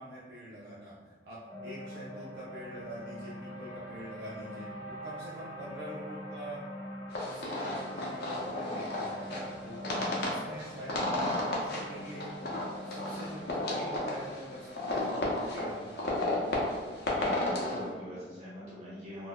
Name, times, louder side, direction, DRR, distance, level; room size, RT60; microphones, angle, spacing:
voice 1, 0.0-6.6 7.2-12.3 12.8-16.2, right 1 dB, 65° right, -7 dB, 0.5 m, -45 dB
sound 1, 1.5-17.7, equal, 20° left, 0.6 m, -44 dB
sound 2, 7.1-17.8, left 1 dB, 65° left, 0.6 m, -33 dB
voice 2, 17.0-19.3, equal, 40° right, -9 dB, 1.2 m, -43 dB
3.8 x 2.0 x 2.2 m, 1.5 s
head